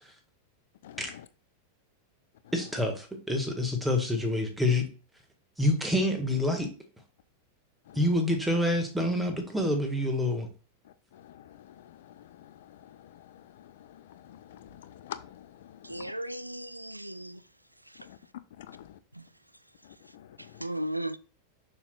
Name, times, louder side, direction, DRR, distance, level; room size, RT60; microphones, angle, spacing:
voice 1, 2.5-4.8 5.6-6.7 8.0-10.5, left 1 dB, 5° right, 1.9 m, -27 dB
voice 2, 14.3-15.5 16.0-16.1 18.1-18.2 18.6-18.9, left 11 dB, 55° left, 0.5 m, -45 dB
voice 3, 15.8-17.4 20.6-21.2, right 1 dB, 85° right, 0.4 m, -35 dB
6.9 x 6.3 x 2.5 m
figure-of-eight pair, 90°, 0 cm